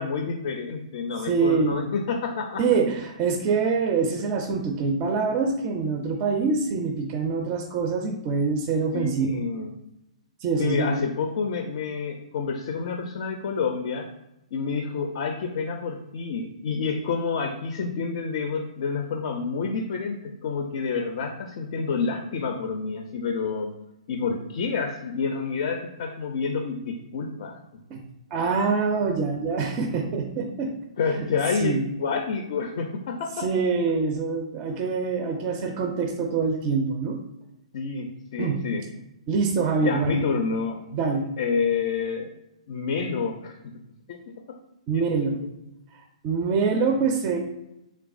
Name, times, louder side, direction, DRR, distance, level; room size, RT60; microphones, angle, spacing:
voice 1, 0.0-2.6 8.9-9.7 10.6-14.1 14.5-23.7 24.1-27.6 31.0-33.5 37.7-38.8 39.8-40.8 41.4-42.3 42.7-43.6 44.1-44.2, left 5 dB, 50° left, 4 dB, 0.4 m, -28 dB
voice 2, 1.3-1.8 2.6-9.4 10.4-11.0 27.9-28.0 28.3-30.7 31.2-31.8 33.4-37.2 38.4-38.6 39.3-40.2 40.9-41.3 44.9-45.4 45.9-47.4, right 4 dB, 30° right, 4 dB, 0.4 m, -25 dB
3.4 x 3.1 x 2.4 m, 0.90 s
figure-of-eight pair, 120°, 4 cm